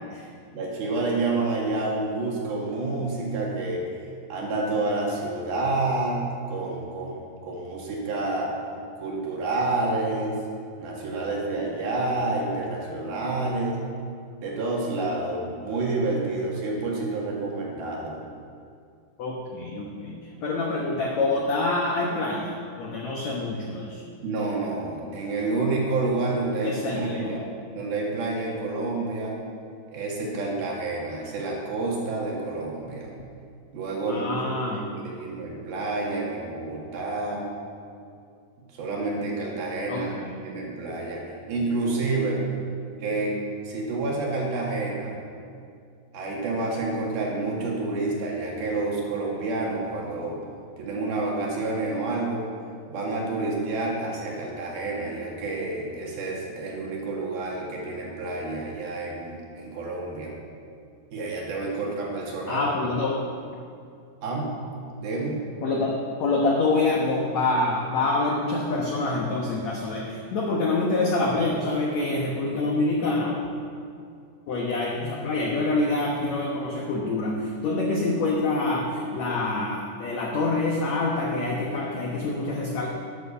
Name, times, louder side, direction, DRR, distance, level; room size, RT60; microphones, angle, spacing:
voice 1, 0.5-3.9 4.3-8.5 9.0-10.4 10.8-13.9 14.4-18.2 24.2-27.4 27.7-29.4 29.9-33.1 33.7-37.5 38.7-40.2 40.4-41.2 41.5-42.4 43.0-45.2 46.1-50.4 50.8-52.5 52.9-60.3 61.1-62.7 64.2-65.4, right 2 dB, 65° right, -2 dB, 3.7 m, -29 dB
voice 2, 19.2-24.0 26.6-27.4 34.1-34.8 39.9-40.4 62.5-63.2 65.6-73.4 74.5-82.9, left 2 dB, 80° left, -1 dB, 1.6 m, -26 dB
12.5 x 9.2 x 7.0 m, 2.4 s
omnidirectional pair, 4.9 m